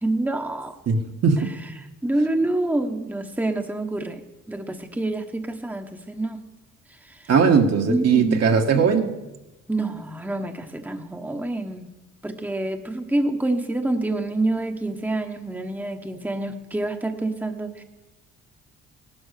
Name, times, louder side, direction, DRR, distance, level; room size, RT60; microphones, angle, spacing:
voice 1, 0.0-0.8 2.0-6.4 6.9-7.3 7.9-8.5 9.7-11.9 12.2-17.8, right 2 dB, 5° right, 5 dB, 1.2 m, -27 dB
voice 2, 0.9-1.5 7.3-9.1, right 6 dB, 55° right, 3 dB, 1.8 m, -19 dB
17.0 x 12.5 x 6.7 m, 1.1 s
cardioid pair, 90°, 30 cm